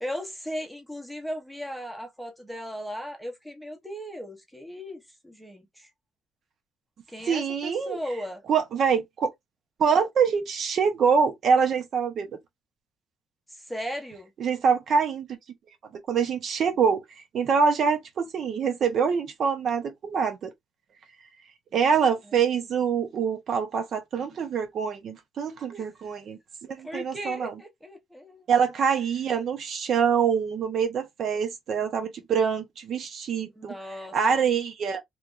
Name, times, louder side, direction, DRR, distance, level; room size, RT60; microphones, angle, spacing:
voice 1, 0.0-5.9 7.1-8.4 13.7-14.3 25.7-25.9 26.8-28.5 33.6-34.4, equal, ahead, 0.9 m, -37 dB
voice 2, 7.2-8.0 8.5-9.3 9.8-12.3 14.4-15.4 15.9-17.0 17.3-20.5 21.7-26.4 26.7-27.6 28.5-33.7 34.1-35.0, right 6 dB, 45° right, 0.9 m, -25 dB
3.3 x 3.0 x 2.4 m
cardioid pair, 155°, 0 cm